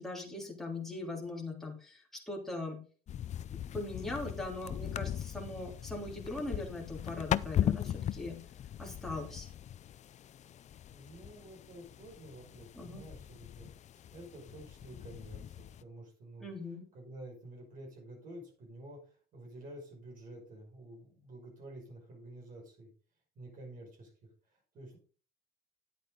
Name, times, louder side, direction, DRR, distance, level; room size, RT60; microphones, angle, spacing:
voice 1, 0.0-2.8 3.7-8.4 8.8-9.5 12.8-13.0 16.4-16.8, left 2 dB, ahead, -2 dB, 3.3 m, -40 dB
sound 1, 3.1-15.8, left 10 dB, 45° left, 0.4 m, -39 dB
voice 2, 10.9-13.7 14.1-16.5 16.9-19.0 19.3-22.9 23.4-24.1 24.5-25.0, right 1 dB, 55° right, 0 dB, 5.6 m, -50 dB
10.5 x 8.4 x 3.9 m, 0.39 s
cardioid pair, 110°, 17 cm